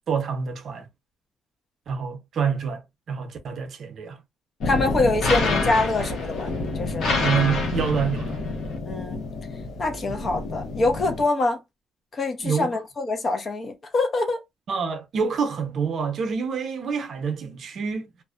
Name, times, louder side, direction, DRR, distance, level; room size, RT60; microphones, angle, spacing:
voice 1, 0.1-0.9 1.9-2.8 3.1-4.2 7.2-8.4 12.4-12.7 14.7-18.1, right 6 dB, 60° right, 0.7 m, -27 dB
sound 1, 4.6-11.2, left 3 dB, 75° left, 0.8 m, -27 dB
voice 2, 4.6-7.2 8.8-9.2 9.8-11.6 12.1-14.4, left 2 dB, 40° left, 0.7 m, -25 dB
2.4 x 2.1 x 2.4 m
cardioid pair, 90°, 0 cm